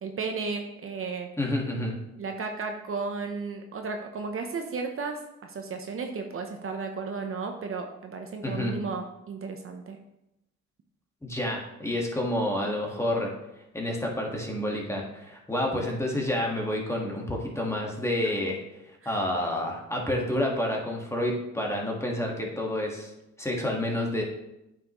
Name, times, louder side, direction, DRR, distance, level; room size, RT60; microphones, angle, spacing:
voice 1, 0.0-1.3 2.2-10.0 18.2-18.3 19.0-19.2, right 4 dB, 45° right, 4 dB, 0.8 m, -34 dB
voice 2, 1.4-2.0 8.4-8.8 11.2-13.3 13.7-18.6 19.0-23.1 23.4-24.2, left 1 dB, 10° left, -1 dB, 1.7 m, -29 dB
8.9 x 5.7 x 3.1 m, 0.88 s
cardioid pair, 90°, 30 cm